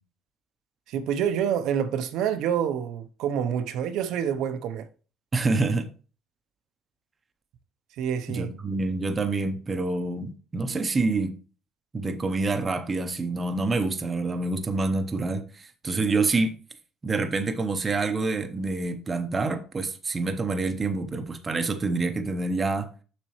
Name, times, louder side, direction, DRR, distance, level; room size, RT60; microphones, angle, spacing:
voice 1, 0.9-4.9 8.0-8.5, right 8 dB, 65° right, 0.6 m, -27 dB
voice 2, 5.3-5.9 8.3-11.4 11.9-16.5 17.0-22.9, right 3 dB, 20° right, 0.6 m, -27 dB
7.0 x 6.5 x 3.0 m
cardioid pair, 175°, 0 cm